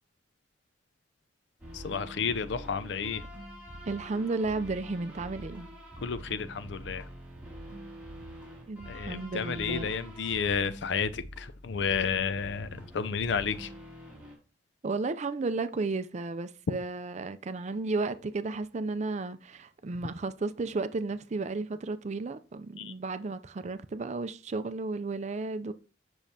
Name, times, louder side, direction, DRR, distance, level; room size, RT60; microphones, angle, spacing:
sound 1, 1.6-14.4, equal, 10° right, 2.7 m, -45 dB
voice 1, 1.7-3.2 6.0-7.0 8.9-12.7 12.9-13.7 22.8-22.9, left 6 dB, 65° left, 0.5 m, -31 dB
voice 2, 3.9-5.7 8.7-9.9 14.8-25.7, right 3 dB, 40° right, 0.4 m, -33 dB
7.0 x 6.1 x 2.8 m
head